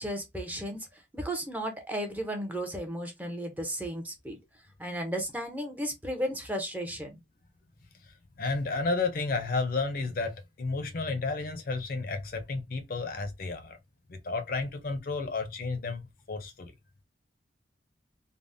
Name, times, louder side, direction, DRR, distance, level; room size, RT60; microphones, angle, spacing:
voice 1, 0.0-4.4 4.8-7.2, equal, 10° right, 0.5 m, -34 dB
voice 2, 8.4-13.8 14.1-16.7, left 3 dB, 50° left, 0.5 m, -32 dB
3.4 x 2.0 x 2.5 m
head